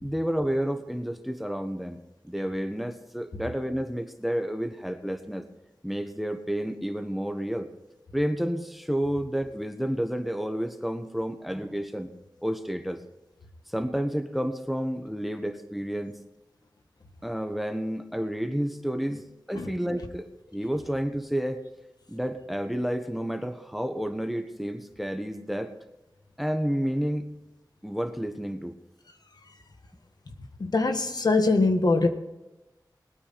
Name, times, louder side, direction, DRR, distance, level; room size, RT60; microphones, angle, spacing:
voice 1, 0.0-2.0 2.2-5.4 5.8-7.7 8.1-12.1 12.4-13.0 13.7-16.2 17.2-19.2 19.5-21.6 22.1-25.7 26.4-27.3 27.8-28.7, equal, ahead, 7 dB, 1.3 m, -30 dB
voice 2, 30.6-32.1, left 3 dB, 65° left, 6 dB, 1.6 m, -22 dB
20.5 x 9.5 x 4.2 m, 1.0 s
wide cardioid pair, 70°, 7 cm